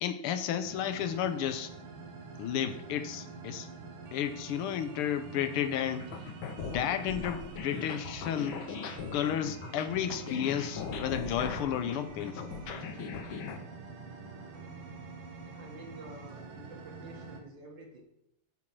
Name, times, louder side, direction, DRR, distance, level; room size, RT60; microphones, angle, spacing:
voice 1, 0.0-1.7 2.4-3.7 4.1-6.1 6.6-8.6 9.1-12.5, left 9 dB, 85° left, 1.6 m, -32 dB
sound 1, 0.6-17.4, right 4 dB, 85° right, 2.3 m, -46 dB
sound 2, 6.0-13.6, left 6 dB, 70° left, 1.7 m, -39 dB
voice 2, 15.4-18.0, right 1 dB, 55° right, 2.5 m, -50 dB
10.0 x 4.6 x 7.3 m
omnidirectional pair, 2.4 m